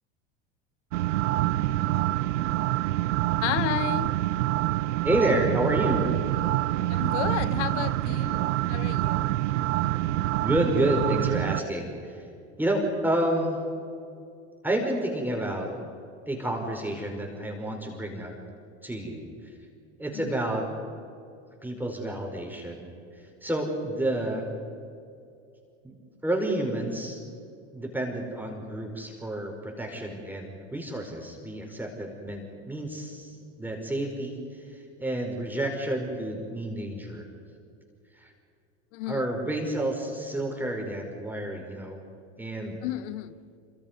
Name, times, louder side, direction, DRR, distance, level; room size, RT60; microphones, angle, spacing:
sound 1, 0.9-11.6, right 15 dB, 80° right, 0.7 m, -26 dB
voice 1, 3.4-4.2 6.9-9.3 20.2-20.3 38.9-39.3 42.8-43.4, left 13 dB, 75° left, 15 dB, 1.1 m, -32 dB
voice 2, 5.0-6.0 10.0-12.3 12.6-13.6 14.6-15.7 16.3-18.3 18.8-19.3 20.0-20.7 21.6-22.9 23.2-24.6 25.8-26.0 26.2-27.2 27.7-37.3 38.1-38.3 39.1-42.0 42.4-42.8, right 1 dB, 5° right, 1 dB, 5.1 m, -30 dB
27.5 x 25.5 x 5.3 m, 2.5 s
hypercardioid pair, 95°, 36 cm